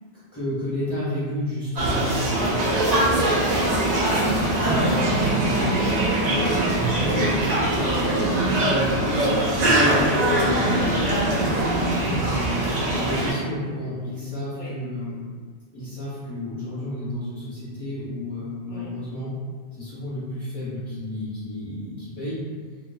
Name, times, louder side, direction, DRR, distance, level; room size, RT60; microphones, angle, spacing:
voice 1, 0.3-3.2 4.6-5.7 6.2-6.4 7.1-10.8 11.5-15.2 15.7-19.3 19.7-22.5, left 1 dB, 15° left, -14 dB, 0.9 m, -32 dB
sound 1, 1.8-13.3, right 1 dB, 50° right, 0.5 m, -22 dB
voice 2, 3.9-7.3 7.8-8.4 10.1-11.2 13.0-13.2 14.5-14.7 18.7-18.9, left 1 dB, 45° left, -11 dB, 0.4 m, -32 dB
2.8 x 2.3 x 2.3 m, 1.5 s
omnidirectional pair, 1.2 m